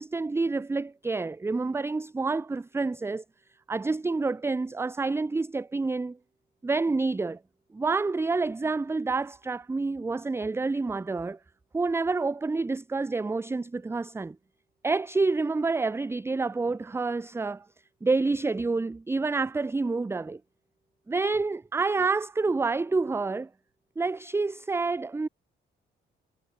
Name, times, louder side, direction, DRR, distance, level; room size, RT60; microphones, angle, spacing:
voice 1, 0.0-3.2 3.7-6.2 6.6-7.4 7.7-11.4 11.7-14.4 14.8-17.7 18.0-20.4 21.1-23.5 24.0-25.3, right 3 dB, 10° right, 0.5 m, -28 dB
cardioid pair, 90°, 20 cm